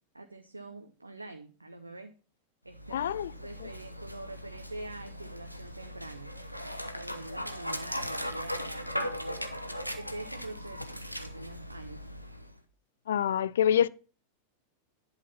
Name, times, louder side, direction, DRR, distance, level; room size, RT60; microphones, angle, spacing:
voice 1, 0.1-2.1 2.6-3.1 3.4-6.3 6.9-9.4 9.9-12.1, right 2 dB, 80° right, 0.7 m, -45 dB
Dog, 2.7-12.6, equal, 90° left, 0.8 m, -39 dB
voice 2, 2.9-3.3 3.6-3.7 13.1-13.9, left 9 dB, 60° left, 0.3 m, -26 dB
11.0 x 4.1 x 5.7 m
figure-of-eight pair, 90°, 0 cm